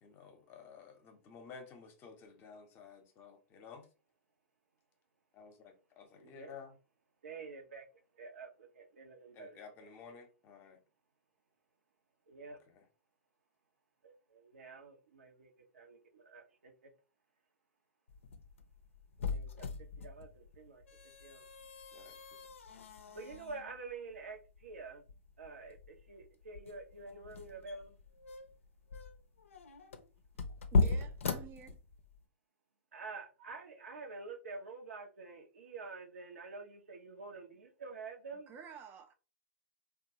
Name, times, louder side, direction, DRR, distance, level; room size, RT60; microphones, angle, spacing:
voice 1, 0.0-3.9 5.3-6.7 9.3-10.8 12.7-12.8 21.9-22.2, left 6 dB, 35° left, 0.7 m, -53 dB
voice 2, 6.1-6.6 7.2-7.9 8.1-9.9 12.3-12.6 14.0-16.9 19.2-21.4 23.1-25.0 25.4-28.0 32.9-38.5, right 4 dB, 75° right, 0.8 m, -48 dB
sound 1, 18.1-32.2, left 3 dB, 75° left, 0.4 m, -38 dB
voice 3, 30.7-31.8 38.5-39.1, right 5 dB, 30° right, 0.5 m, -49 dB
2.9 x 2.3 x 2.8 m
figure-of-eight pair, 105°, 7 cm